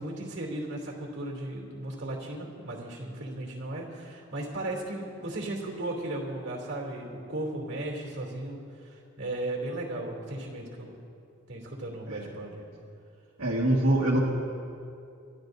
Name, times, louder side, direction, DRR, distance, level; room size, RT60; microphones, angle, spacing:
voice 1, 0.0-11.0 11.5-12.6, right 1 dB, 55° right, -1 dB, 2.8 m, -36 dB
voice 2, 13.4-14.2, right 1 dB, 75° right, -6 dB, 1.6 m, -24 dB
29.0 x 12.5 x 2.6 m, 2.5 s
head